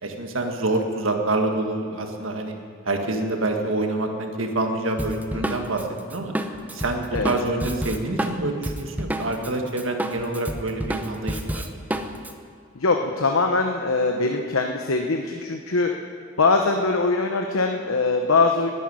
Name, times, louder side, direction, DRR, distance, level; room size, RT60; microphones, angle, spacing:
voice 1, 0.0-2.5 2.9-5.8 6.1-6.3 6.7-11.6, right 2 dB, 70° right, 3 dB, 1.7 m, -26 dB
Drum kit, 5.0-9.5 9.8-12.3, right 1 dB, 10° right, 0.7 m, -29 dB
voice 2, 5.3-5.6 7.1-7.4 12.7-15.9 16.4-18.7, left 3 dB, 85° left, 3 dB, 0.9 m, -22 dB
11.0 x 10.5 x 9.7 m, 2.3 s
head